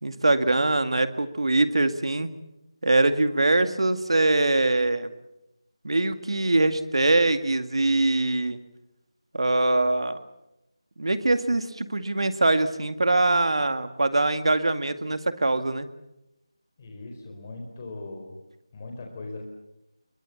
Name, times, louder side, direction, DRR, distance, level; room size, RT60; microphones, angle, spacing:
voice 1, 0.0-2.3 2.8-5.1 5.8-8.6 9.3-10.2 11.0-15.9, right 2 dB, 65° right, 10 dB, 2.1 m, -23 dB
voice 2, 16.8-18.3 18.7-19.4, left 2 dB, 20° left, 2 dB, 4.3 m, -39 dB
28.0 x 22.5 x 7.3 m, 0.88 s
figure-of-eight pair, 175°, 3 cm